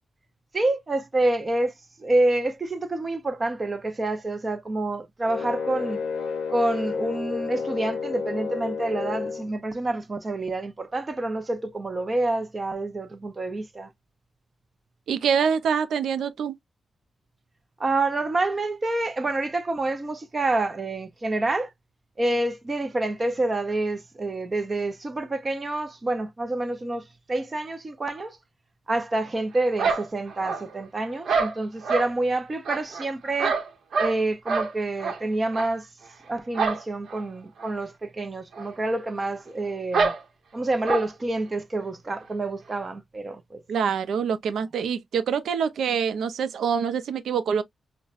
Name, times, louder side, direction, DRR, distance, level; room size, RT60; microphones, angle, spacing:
voice 1, 0.5-1.7 2.0-6.0 6.5-13.9 17.8-21.7 22.2-28.4 28.9-33.5 34.0-35.9 36.3-40.1 40.5-43.6, right 2 dB, 25° right, 0.6 m, -27 dB
sound 1, 5.3-9.5, left 5 dB, 70° left, 0.5 m, -30 dB
voice 2, 15.1-16.5 43.7-47.6, right 7 dB, 90° right, 0.5 m, -25 dB
sound 2, 29.8-30.8 31.3-32.1 32.7-34.2 34.5-34.7 35.0-35.2 35.5-35.7 36.5-36.8 37.1-37.2 37.6-37.7 38.5-38.7 38.9-39.0 39.9-40.2 40.8-41.1, right 4 dB, 70° right, 0.9 m, -26 dB
5.5 x 2.2 x 2.4 m
wide cardioid pair, 165°, 0 cm